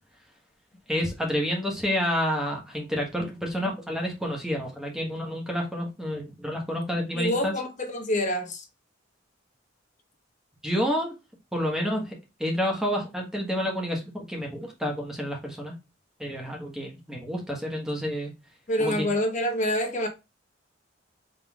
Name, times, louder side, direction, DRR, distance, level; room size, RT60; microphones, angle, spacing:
voice 1, 0.9-7.5 10.6-11.1 11.5-12.1 12.4-15.7 16.2-18.3 18.8-19.1, equal, 5° right, 1.3 m, -29 dB
voice 2, 7.1-8.6 18.7-20.1, left 1 dB, 40° left, 1.1 m, -27 dB
5.4 x 3.8 x 2.4 m
head